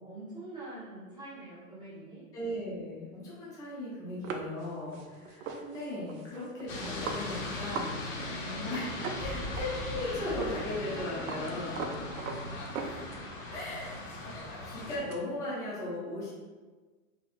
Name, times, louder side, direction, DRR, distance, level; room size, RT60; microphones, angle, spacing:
voice 1, 0.0-2.2 9.3-9.4 11.3-11.6 11.9-12.0 13.2-13.4, right 2 dB, 10° right, -10 dB, 1.2 m, -46 dB
voice 2, 2.3-8.0 8.4-11.9 12.8-13.1 13.5-14.0 14.6-16.3, left 1 dB, 10° left, -7 dB, 0.5 m, -37 dB
sound 1, 4.2-8.0 8.2-8.3 8.6-10.0 10.4-10.6 10.8-13.4 13.8-15.2, right 4 dB, 70° right, 0.6 m, -40 dB
sound 2, 6.7-15.0, left 2 dB, 65° left, 1.1 m, -39 dB
4.2 x 2.8 x 2.5 m, 1.3 s
hypercardioid pair, 145°, 42 cm